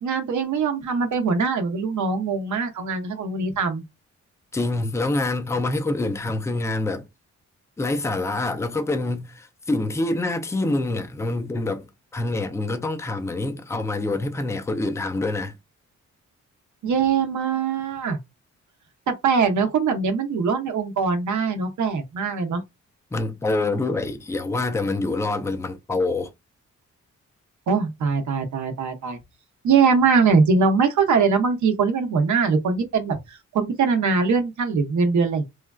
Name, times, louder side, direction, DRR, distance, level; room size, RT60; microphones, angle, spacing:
voice 1, 0.0-3.8 16.8-18.2 19.1-22.6 27.7-29.2 29.6-35.4, right 5 dB, 75° right, 0.7 m, -22 dB
voice 2, 4.5-7.1 7.8-15.5 23.1-26.3, left 2 dB, 10° left, 0.4 m, -26 dB
3.1 x 2.3 x 2.2 m
wide cardioid pair, 130°, 30 cm